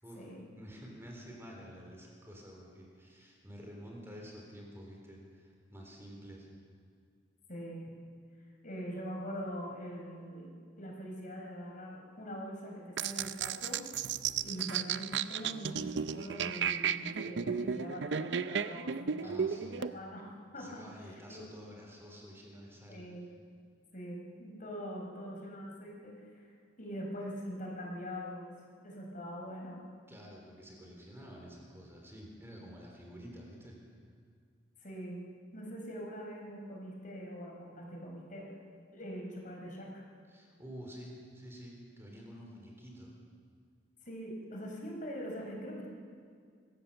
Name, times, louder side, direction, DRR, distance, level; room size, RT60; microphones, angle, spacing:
voice 1, 0.0-6.5 19.2-19.9 20.6-23.0 30.1-33.8 40.3-43.2, equal, 15° right, -1 dB, 3.8 m, -49 dB
voice 2, 7.5-7.9 8.6-10.5 10.8-13.8 14.4-19.4 19.7-20.8 21.3-21.5 22.9-23.3 23.9-26.5 26.8-28.5 28.8-29.8 34.8-35.2 35.5-38.5 38.9-40.0 44.0-45.9, equal, 45° left, 0 dB, 4.9 m, -43 dB
sound 1, 13.0-19.9, right 7 dB, 70° right, 0.6 m, -34 dB
25.0 x 16.0 x 6.9 m, 2.1 s
head